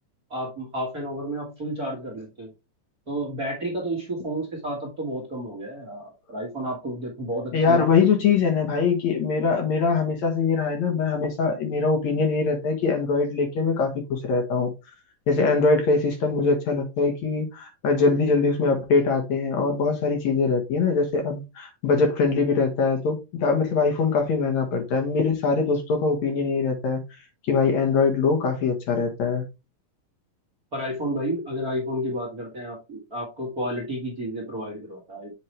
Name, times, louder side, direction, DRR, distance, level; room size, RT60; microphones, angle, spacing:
voice 1, 0.3-2.5 3.1-7.8 30.7-35.3, right 1 dB, 35° right, 1.8 m, -31 dB
voice 2, 7.5-14.7 15.3-27.2 27.5-29.4, left 4 dB, 60° left, 2.5 m, -22 dB
7.8 x 4.7 x 3.3 m
omnidirectional pair, 4.0 m